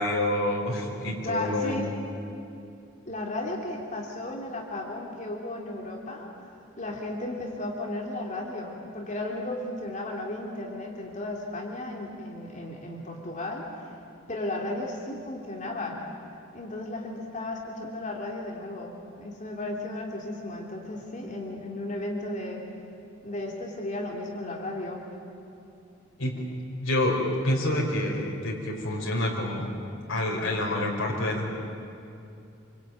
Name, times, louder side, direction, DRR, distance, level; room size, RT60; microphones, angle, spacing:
voice 1, 0.0-1.9 26.2-26.3 26.8-29.7 30.1-31.5, left 1 dB, 80° left, -1 dB, 4.6 m, -27 dB
voice 2, 1.2-1.9 3.1-6.3 6.8-13.9 14.3-16.0 16.5-22.6 23.2-25.1, left 1 dB, 40° left, 0 dB, 2.9 m, -34 dB
27.0 x 24.0 x 9.3 m, 2.6 s
head